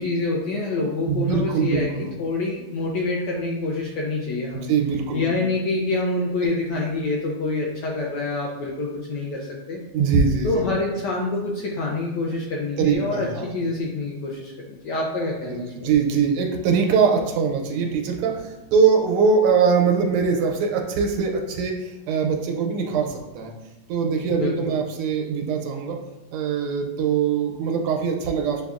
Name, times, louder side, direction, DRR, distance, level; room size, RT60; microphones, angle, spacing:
voice 1, 0.0-4.7 5.1-9.8 10.4-15.9 24.3-24.7, left 2 dB, 75° left, -2 dB, 1.0 m, -26 dB
voice 2, 1.1-2.1 4.7-5.3 9.9-10.7 12.8-13.5 15.4-23.5 23.9-26.0 26.3-28.6, right 5 dB, 85° right, 2 dB, 1.5 m, -22 dB
6.8 x 2.3 x 2.4 m, 1.0 s
omnidirectional pair, 2.3 m